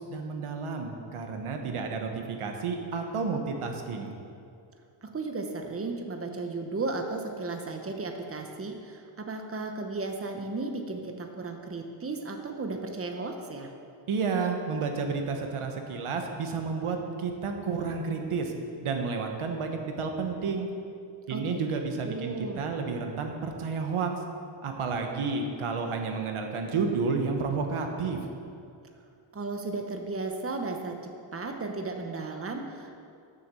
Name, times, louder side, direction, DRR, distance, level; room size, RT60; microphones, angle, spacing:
voice 1, 0.0-4.1 14.1-18.5 18.8-20.7 21.3-24.1 24.6-28.2, right 4 dB, 90° right, 4 dB, 1.3 m, -31 dB
voice 2, 5.0-13.7 21.3-21.6 22.0-22.6 29.3-31.0 31.3-33.0, right 3 dB, 25° right, 4 dB, 1.1 m, -35 dB
10.5 x 6.9 x 6.9 m, 2.4 s
wide cardioid pair, 105°, 49 cm